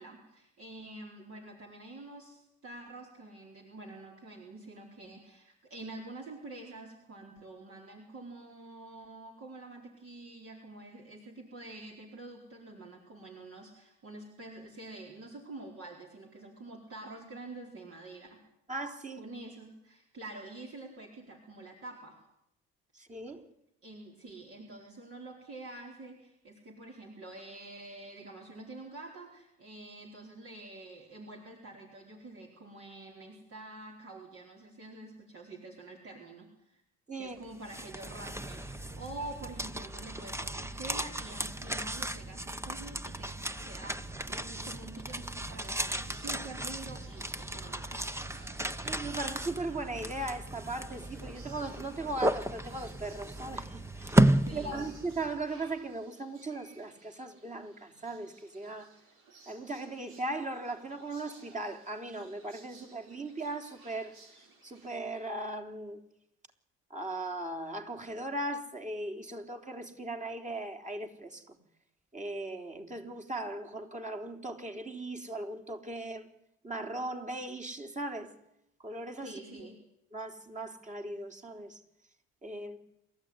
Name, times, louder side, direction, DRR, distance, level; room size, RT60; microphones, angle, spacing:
voice 1, 0.0-18.4 19.2-22.2 23.8-36.8 37.2-43.3 43.6-48.0 54.4-54.8 79.2-79.8, right 2 dB, 45° right, 4.5 m, -47 dB
voice 2, 18.7-19.3 22.9-23.5 37.1-37.4 48.9-59.0 59.5-64.2 64.6-66.0 66.9-71.6 72.1-76.3 76.6-78.3 78.8-79.7 80.1-81.8 82.4-82.8, right 2 dB, 25° right, 3.8 m, -38 dB
sound 1, 37.4-55.4, right 1 dB, 10° right, 1.1 m, -34 dB
sound 2, 45.6-65.3, right 3 dB, 85° right, 4.1 m, -59 dB
28.0 x 14.0 x 9.8 m
supercardioid pair, 70°, 30 cm